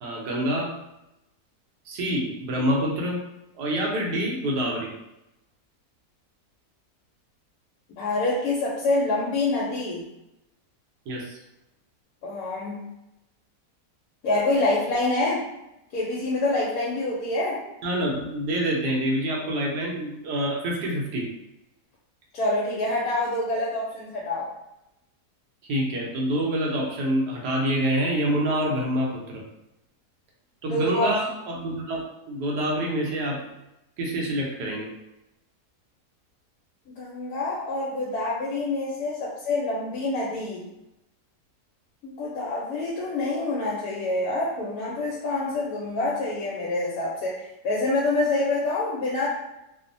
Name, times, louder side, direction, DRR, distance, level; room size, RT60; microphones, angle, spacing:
voice 1, 0.0-0.7 1.9-3.2 3.6-4.9 11.1-11.4 17.8-21.3 25.7-29.4 30.6-33.4 34.0-34.9, right 1 dB, 85° right, -2 dB, 1.3 m, -26 dB
voice 2, 8.0-10.0 12.2-12.8 14.2-15.4 15.9-17.6 22.3-24.5 30.7-31.1 36.9-40.6 42.0-47.4 47.6-49.3, left 2 dB, 75° left, -4 dB, 1.0 m, -26 dB
3.0 x 2.0 x 2.6 m, 0.89 s
omnidirectional pair, 1.7 m